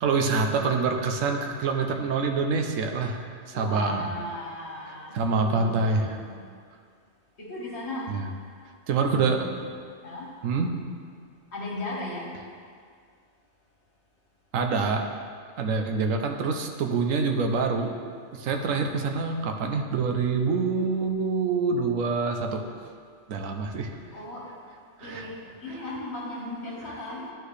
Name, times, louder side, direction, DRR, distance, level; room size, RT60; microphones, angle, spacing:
voice 1, 0.0-4.1 5.1-6.2 8.1-8.2 8.9-9.7 10.4-10.7 14.5-15.0 15.6-17.9 18.3-22.6 23.3-23.9 25.0-25.3, right 4 dB, 85° right, 4 dB, 1.1 m, -26 dB
voice 2, 3.5-6.3 7.4-8.0 9.1-9.4 10.0-10.3 11.5-12.3 24.1-24.4 25.0-25.3 25.6-27.3, left 1 dB, 55° left, -4 dB, 1.8 m, -36 dB
11.0 x 4.6 x 3.3 m, 2.1 s
omnidirectional pair, 1.4 m